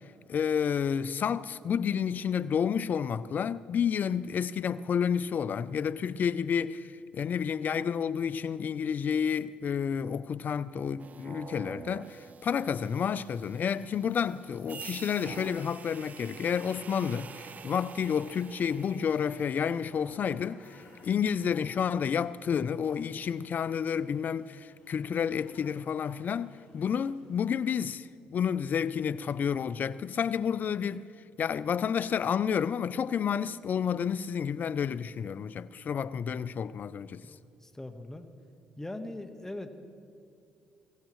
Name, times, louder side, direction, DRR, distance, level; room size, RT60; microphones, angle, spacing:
voice 1, 0.3-31.1 31.4-37.3, left 7 dB, 50° left, 0.5 m, -30 dB
sound 1, 11.0-21.1, right 6 dB, 45° right, 0.4 m, -48 dB
sound 2, 12.5-27.8, left 3 dB, 70° left, 4.4 m, -60 dB
voice 2, 37.2-38.3 38.8-39.7, left 1 dB, 10° left, 1.3 m, -41 dB
22.5 x 16.0 x 3.1 m
supercardioid pair, 65°, 4 cm